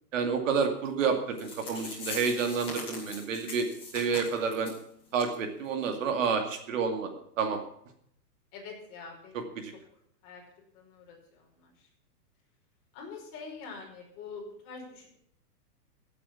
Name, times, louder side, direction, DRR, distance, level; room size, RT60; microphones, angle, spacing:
voice 1, 0.1-4.7 5.1-7.1 7.4-7.6 9.6-9.7, right 5 dB, 50° right, 5 dB, 2.4 m, -29 dB
sound 1, 1.1-1.2 1.4-4.8 5.1-5.3 5.6-5.7 6.2-6.3, left 3 dB, 10° left, 5.9 m, -41 dB
voice 2, 8.5-9.4 10.2-10.4 10.7-11.7 12.9-15.1, left 4 dB, 30° left, -1 dB, 5.5 m, -45 dB
15.5 x 8.4 x 7.2 m, 0.67 s
hypercardioid pair, 170°, 48 cm